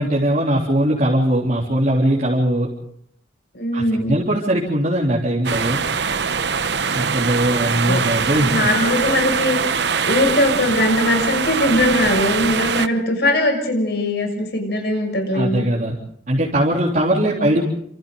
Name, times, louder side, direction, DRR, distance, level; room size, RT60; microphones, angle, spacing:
voice 1, 0.0-2.7 3.7-5.8 6.9-8.7 15.3-16.0 16.3-17.6, right 1 dB, 45° right, -5 dB, 3.6 m, -20 dB
voice 2, 3.5-4.1 7.8-8.0 8.4-9.8 10.0-15.7 17.2-17.6, left 1 dB, 70° left, 3 dB, 6.6 m, -20 dB
sound 1, 5.4-12.9, right 6 dB, 80° right, 1.0 m, -22 dB
29.5 x 26.5 x 4.0 m, 0.65 s
head